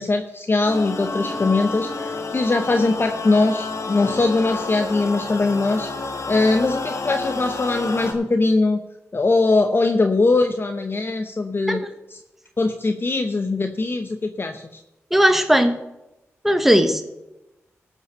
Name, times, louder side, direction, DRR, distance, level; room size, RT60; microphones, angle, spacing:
voice 1, 0.0-8.8 9.1-11.8 12.1-12.2 12.6-14.8, left 3 dB, 40° left, 7 dB, 0.8 m, -21 dB
sound 1, 0.6-8.1, left 3 dB, 60° left, 1.6 m, -29 dB
voice 2, 15.1-15.8 16.4-17.0, equal, 5° right, 8 dB, 1.2 m, -17 dB
13.5 x 5.5 x 6.5 m, 0.95 s
cardioid pair, 45°, 6 cm